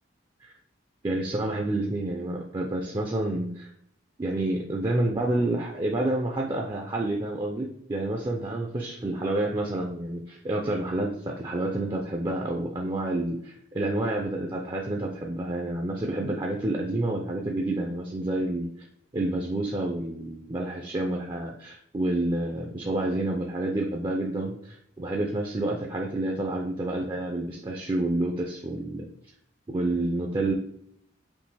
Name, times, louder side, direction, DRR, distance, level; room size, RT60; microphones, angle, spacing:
voice 1, 1.0-3.7 4.2-18.7 19.1-29.1 29.7-30.5, right 2 dB, 20° right, 0 dB, 0.4 m, -29 dB
5.2 x 2.9 x 3.3 m, 0.70 s
head